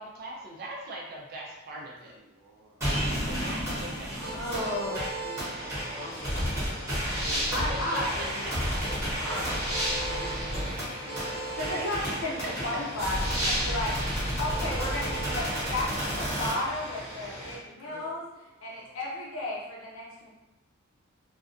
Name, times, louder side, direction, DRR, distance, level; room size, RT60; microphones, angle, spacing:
voice 1, 0.0-2.1 3.2-4.1 4.6-6.4 7.7-9.0 11.7-11.9 12.2-12.8, right 1 dB, 45° right, -2 dB, 0.4 m, -41 dB
voice 2, 1.7-2.9 3.8-4.7 6.0-7.5 9.0-11.6 13.9-14.5 17.4-18.1 18.6-19.0, right 1 dB, 85° right, -2 dB, 0.6 m, -47 dB
sound 1, 2.8-16.5, equal, 15° right, 0.9 m, -31 dB
voice 3, 4.3-5.0 7.5-8.4 11.6-13.9 14.4-18.2 18.6-20.3, left 1 dB, 65° left, -5 dB, 0.7 m, -33 dB
sound 2, 5.5-17.6, equal, 25° left, 0.8 m, -42 dB
2.3 x 2.1 x 2.5 m, 0.97 s
head